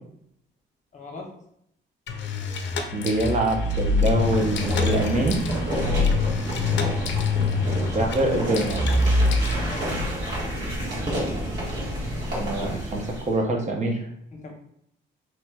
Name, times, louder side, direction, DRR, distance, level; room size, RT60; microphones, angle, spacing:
voice 1, 0.9-1.3 5.8-6.1 9.6-10.0 14.3-14.5, left 3 dB, 40° left, 0 dB, 0.8 m, -40 dB
sound 1, 2.1-10.1, left 3 dB, 65° left, 0.5 m, -25 dB
voice 2, 2.9-5.4 7.9-8.9 12.3-14.1, right 2 dB, 35° right, 1 dB, 0.7 m, -25 dB
sound 2, 3.4-13.4, right 1 dB, 65° right, 1.5 m, -30 dB
3.1 x 3.0 x 2.2 m, 0.71 s
cardioid pair, 90°, 20 cm